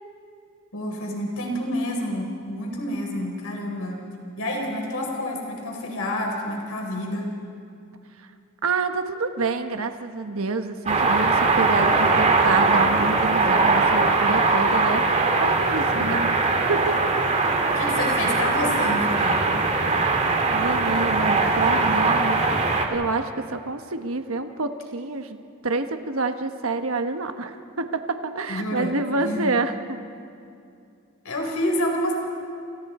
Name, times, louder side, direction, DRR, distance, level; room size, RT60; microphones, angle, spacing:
voice 1, 0.7-4.0 4.4-7.3 15.9-16.1 17.7-19.6 28.5-28.9 29.2-29.5 31.2-32.1, left 1 dB, 90° left, 0 dB, 4.3 m, -28 dB
voice 2, 8.6-15.0 15.4-16.3 16.7-17.3 20.5-22.5 22.9-25.4 25.6-30.0, right 3 dB, 70° right, 7 dB, 1.3 m, -27 dB
sound 1, 10.9-22.9, right 3 dB, 35° right, 2.2 m, -21 dB
29.0 x 29.0 x 4.3 m, 2.5 s
head